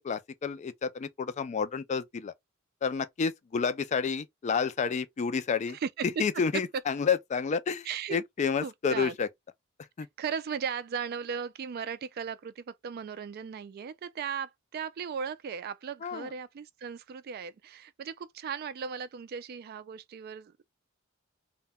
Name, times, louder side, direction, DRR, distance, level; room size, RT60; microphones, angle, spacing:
voice 1, 0.0-2.3 2.8-5.8 6.2-9.3 10.0-10.1 16.0-16.3, left 6 dB, 35° left, 0.3 m, -30 dB
voice 2, 5.7-6.2 7.8-8.2 8.6-9.2 10.2-20.6, right 7 dB, 50° right, 0.3 m, -37 dB
2.2 x 2.1 x 3.3 m
head